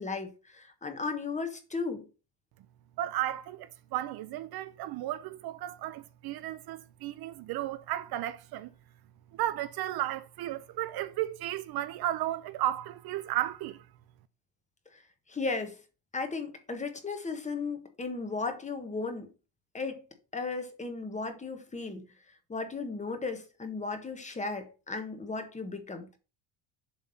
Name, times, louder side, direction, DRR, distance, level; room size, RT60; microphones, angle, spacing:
voice 1, 0.0-2.1 14.9-15.0 15.3-15.8 16.1-19.3 19.7-20.1 20.3-22.0 22.5-26.2, left 4 dB, 15° left, 1.3 m, -35 dB
voice 2, 3.0-8.7 9.3-13.8, right 13 dB, 55° right, 0.6 m, -34 dB
7.3 x 3.6 x 5.7 m
cardioid pair, 125°, 44 cm